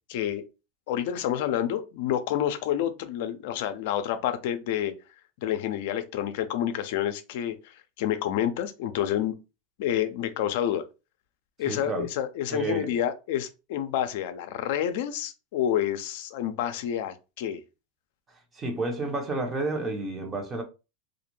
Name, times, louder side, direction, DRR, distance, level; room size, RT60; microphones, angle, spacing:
voice 1, 0.1-0.4 0.9-4.9 5.4-9.3 9.8-10.8 11.6-17.6, left 10 dB, 65° left, 0.4 m, -29 dB
voice 2, 11.7-12.1 12.5-13.0 18.3-20.6, right 2 dB, 25° right, 0.8 m, -31 dB
2.3 x 2.1 x 3.1 m
hypercardioid pair, 115°, 0 cm